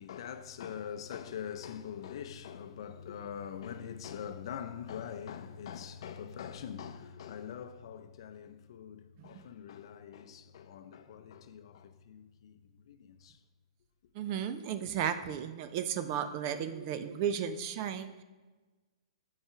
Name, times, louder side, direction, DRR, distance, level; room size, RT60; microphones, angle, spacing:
voice 1, 0.0-12.6 12.9-13.4, left 8 dB, 50° left, 0.6 m, -43 dB
voice 2, 14.1-18.2, right 8 dB, 30° right, 0.4 m, -34 dB
5.6 x 4.9 x 5.6 m
hypercardioid pair, 165°, 3 cm